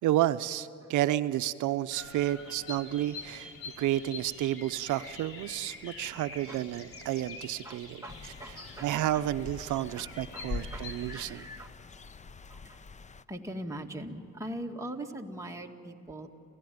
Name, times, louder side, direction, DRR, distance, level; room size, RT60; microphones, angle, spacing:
voice 1, 0.0-3.5 3.8-8.3 8.8-11.4, right 13 dB, 80° right, 12 dB, 0.6 m, -31 dB
Bird vocalization bird call bird song, 1.9-11.3, left 3 dB, 45° left, 4.2 m, -46 dB
voice 2, 7.6-9.3 10.0-11.7 12.6-12.8 13.3-16.3, right 1 dB, 10° right, 1 dB, 2.1 m, -42 dB
sound 1, 8.1-13.2, left 4 dB, 25° left, 0.6 m, -44 dB
28.0 x 16.0 x 9.4 m, 2.9 s
cardioid pair, 90°, 30 cm